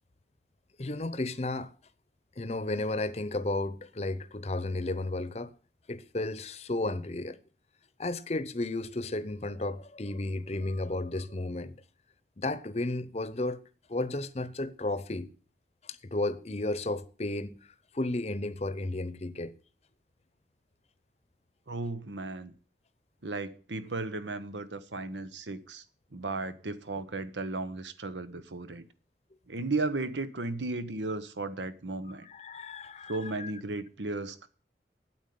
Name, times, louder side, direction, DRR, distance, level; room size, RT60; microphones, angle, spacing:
voice 1, 0.8-1.7 2.4-5.5 5.9-7.4 8.0-11.8 12.4-13.6 13.9-15.3 16.1-17.6 17.9-19.5 32.2-33.5, left 2 dB, 35° left, 0.8 m, -33 dB
voice 2, 21.7-22.5 23.2-25.8 26.1-28.9 29.5-32.3 33.1-34.5, right 3 dB, 90° right, 1.1 m, -35 dB
9.0 x 8.2 x 9.4 m
head